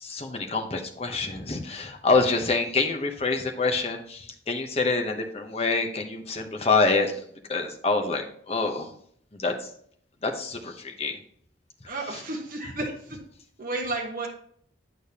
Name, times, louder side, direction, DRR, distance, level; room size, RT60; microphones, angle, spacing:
voice 1, 0.0-8.9 9.3-9.7 10.2-11.2 11.8-12.2, left 3 dB, 30° left, 3 dB, 0.9 m, -26 dB
voice 2, 11.9-13.2 13.6-14.3, right 2 dB, 45° right, -2 dB, 1.1 m, -32 dB
8.7 x 6.7 x 2.9 m, 0.62 s
head